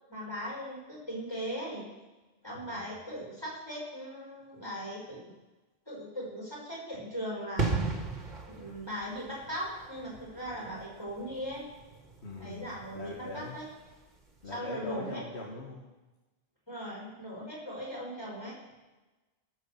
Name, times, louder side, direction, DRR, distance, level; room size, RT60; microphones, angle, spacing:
voice 1, 0.1-1.9 2.4-5.2 5.9-7.7 8.5-11.7 12.3-13.7 14.4-15.2 16.7-18.6, equal, 25° left, -6 dB, 5.5 m, -39 dB
sound 1, 7.6-14.1 14.3-14.5, right 3 dB, 45° right, 1.7 m, -37 dB
voice 2, 12.2-12.7 12.9-13.6 14.4-15.9, left 2 dB, 85° left, -1 dB, 1.9 m, -41 dB
17.5 x 6.7 x 7.3 m, 1.1 s
omnidirectional pair, 1.1 m